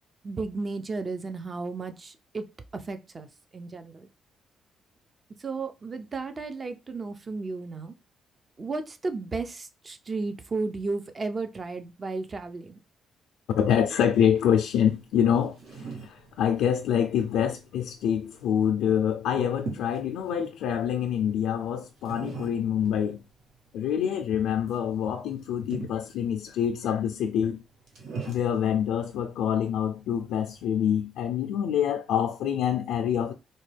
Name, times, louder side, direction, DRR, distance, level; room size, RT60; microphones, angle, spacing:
voice 1, 0.2-2.4 2.7-4.1 5.4-7.9 8.6-12.8, right 3 dB, 35° right, 0.5 m, -34 dB
voice 2, 13.5-23.2 23.7-27.6 28.3-33.3, left 9 dB, 85° left, 0.4 m, -26 dB
sound 1, 14.8-30.6, right 4 dB, 75° right, 1.1 m, -44 dB
4.1 x 2.2 x 3.3 m
cardioid pair, 90°, 0 cm